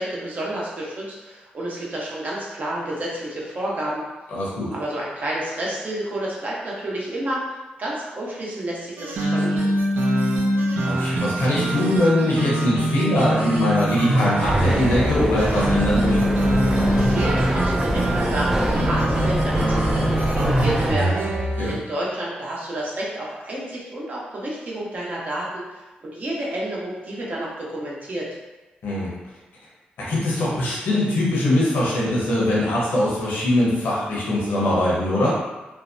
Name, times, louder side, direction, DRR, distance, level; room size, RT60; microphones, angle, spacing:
voice 1, 0.0-4.0 4.7-7.4 7.8-9.6 16.8-21.2 21.7-25.8 26.1-28.3, right 1 dB, 50° right, -5 dB, 0.8 m, -30 dB
voice 2, 4.3-4.7 10.8-16.3 21.6-21.7 28.8-29.1 30.0-35.3, left 1 dB, 80° left, -6 dB, 0.8 m, -22 dB
sound 1, 9.0-21.8, right 1 dB, 80° right, 0.4 m, -23 dB
sound 2, 14.4-21.0, right 1 dB, 15° right, 0.3 m, -24 dB
2.6 x 2.1 x 2.5 m, 1.1 s
cardioid pair, 60°, 4 cm